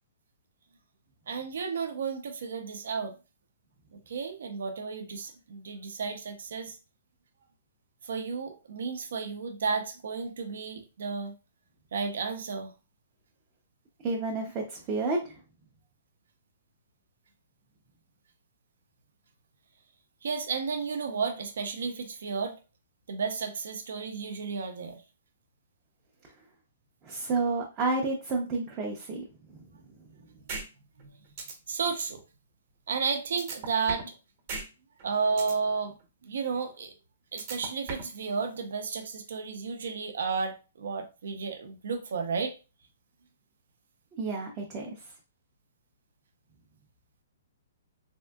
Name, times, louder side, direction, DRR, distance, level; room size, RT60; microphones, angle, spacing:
voice 1, 1.3-3.1 3.9-6.8 8.0-11.3 11.9-12.7 20.2-22.6 23.1-25.0 31.0-31.1 31.7-32.2 32.9-34.1 35.0-36.0 36.2-36.9 37.3-42.5, right 5 dB, 70° right, 6 dB, 0.6 m, -32 dB
voice 2, 14.0-15.4 27.0-29.6 30.2-30.3 44.2-45.1, right 3 dB, 20° right, -1 dB, 0.4 m, -31 dB
sound 1, 30.5-30.6 31.0-31.1 31.4-31.5 33.4-34.1 34.5-34.6 35.0-35.5 37.4-38.1, right 3 dB, 35° right, 0.8 m, -36 dB
3.5 x 2.5 x 2.3 m, 0.31 s
hypercardioid pair, 170°, 0 cm